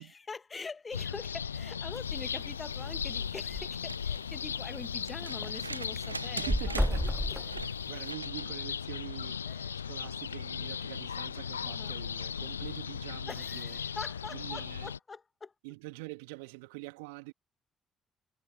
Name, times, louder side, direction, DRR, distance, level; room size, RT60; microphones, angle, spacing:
voice 1, 0.0-6.5 7.0-7.6 9.5-9.7 11.6-12.0 13.3-15.5, left 4 dB, 30° left, 1.6 m, -44 dB
sound 1, 0.9-15.0, left 7 dB, 85° left, 0.5 m, -37 dB
sound 2, 1.9-2.2 2.6-2.7 3.0-3.1 3.3-3.7 4.3-4.4 4.8-5.5 5.8-8.1, equal, ahead, 0.7 m, -32 dB
sound 3, 3.7-8.6 10.2-10.3, right 3 dB, 90° right, 0.9 m, -44 dB
voice 2, 6.2-13.8 14.3-14.9 15.6-17.3, right 28 dB, 70° right, 2.6 m, -45 dB
figure-of-eight pair, 45°, 0 cm